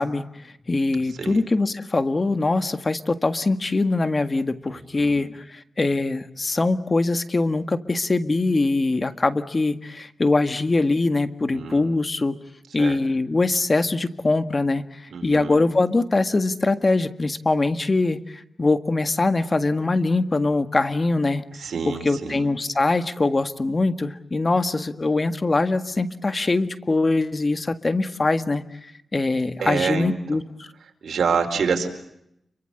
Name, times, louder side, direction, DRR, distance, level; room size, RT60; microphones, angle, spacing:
voice 1, 0.0-12.3 12.7-21.4 21.8-30.7, left 3 dB, 35° left, 11 dB, 1.7 m, -23 dB
voice 2, 1.1-1.4 4.7-5.3 11.5-11.9 12.8-13.0 15.1-15.6 21.5-22.5 29.6-30.2 31.0-31.9, right 6 dB, 85° right, 4 dB, 4.4 m, -27 dB
30.0 x 24.0 x 7.9 m, 0.79 s
cardioid pair, 80°, 0 cm